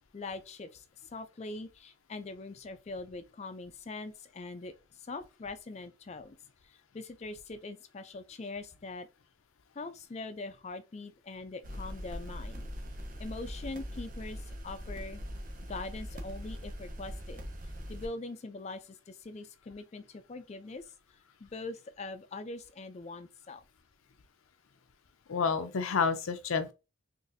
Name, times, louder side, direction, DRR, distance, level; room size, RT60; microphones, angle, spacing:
voice 1, 0.1-6.4 6.6-9.1 9.7-12.7 13.2-15.2 15.7-17.4 17.9-20.9 21.4-23.6, left 3 dB, 30° left, 0.3 m, -42 dB
sound 1, 11.6-18.1, equal, 40° right, 0.6 m, -41 dB
voice 2, 25.3-26.7, left 5 dB, 90° left, 0.5 m, -29 dB
4.0 x 2.6 x 2.5 m
head